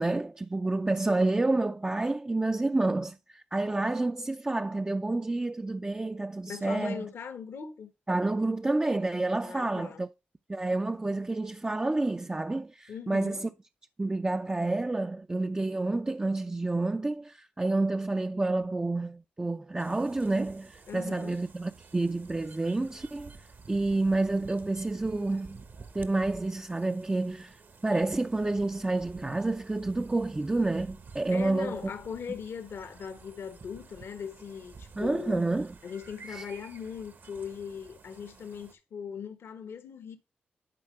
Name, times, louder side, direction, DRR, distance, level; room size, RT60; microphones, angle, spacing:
voice 1, 0.0-7.1 8.1-10.1 10.5-13.5 14.0-23.4 23.7-25.6 25.9-31.8 35.0-35.7 36.3-36.4, right 2 dB, 20° right, 0.5 m, -29 dB
voice 2, 6.5-7.9 9.4-10.0 12.9-13.4 20.9-21.4 31.3-35.5 35.8-40.2, left 6 dB, 75° left, 1.1 m, -39 dB
sound 1, 19.8-38.7, right 4 dB, 55° right, 1.1 m, -51 dB
10.5 x 4.4 x 3.2 m
supercardioid pair, 50°, 4 cm